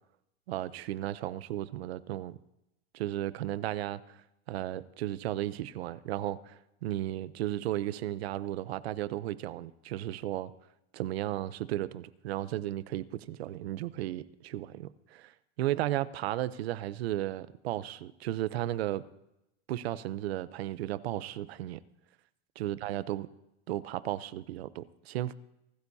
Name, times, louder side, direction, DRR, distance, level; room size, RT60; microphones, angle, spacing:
voice 1, 0.5-2.4 2.9-4.2 4.5-10.5 10.9-15.3 15.6-19.0 19.7-21.8 22.6-23.3 23.7-25.3, right 14 dB, 85° right, 17 dB, 0.8 m, -34 dB
27.0 x 13.0 x 2.8 m, 0.86 s
supercardioid pair, 160°, 30 cm